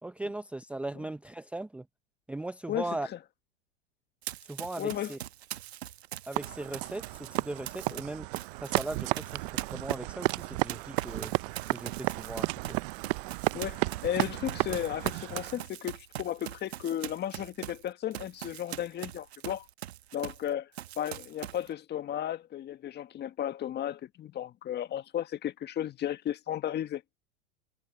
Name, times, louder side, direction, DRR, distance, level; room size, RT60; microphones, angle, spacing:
voice 1, 0.0-1.8 2.3-3.1 4.5-5.2 6.3-8.3 8.6-11.3 11.7-12.8, right 2 dB, 5° right, 0.7 m, -38 dB
voice 2, 2.7-3.2 4.8-5.2 7.9-8.0 13.5-19.7 20.1-20.7 21.0-27.0, left 11 dB, 35° left, 1.7 m, -34 dB
Run, 4.2-8.0 8.3-20.5 20.7-21.7, right 12 dB, 85° right, 1.1 m, -42 dB
sound 1, 6.3-15.6, right 25 dB, 60° right, 0.7 m, -33 dB
hypercardioid pair, 105°, 31 cm